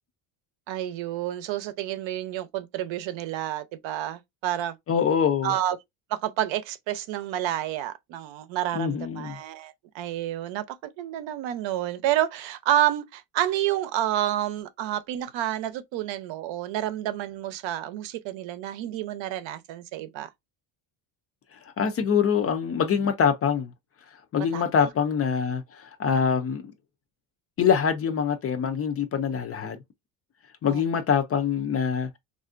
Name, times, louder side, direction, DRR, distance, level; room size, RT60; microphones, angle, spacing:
voice 1, 0.7-4.8 5.4-5.8 6.1-20.3 24.5-24.6 30.7-30.8, right 12 dB, 75° right, 0.7 m, -29 dB
voice 2, 4.9-5.5 8.7-9.4 21.5-23.7 24.1-26.7 27.6-29.8 30.6-32.2, left 7 dB, 35° left, 0.4 m, -25 dB
3.3 x 2.5 x 2.4 m
cardioid pair, 125°, 46 cm